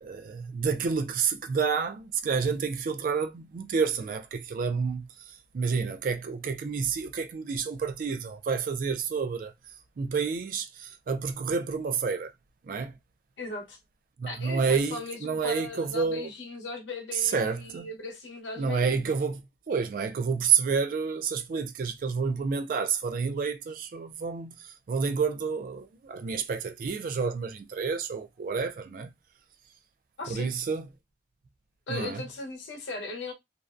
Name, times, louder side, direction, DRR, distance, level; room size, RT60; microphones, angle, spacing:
voice 1, 0.0-9.5 10.0-12.3 12.6-12.9 14.2-16.3 17.2-17.9 18.6-29.1 30.3-30.9 31.9-32.2, right 5 dB, 50° right, 0.3 m, -29 dB
voice 2, 13.4-13.8 14.3-19.0 30.2-30.5 31.9-33.3, left 2 dB, 90° left, 0.8 m, -38 dB
2.5 x 2.1 x 2.3 m
head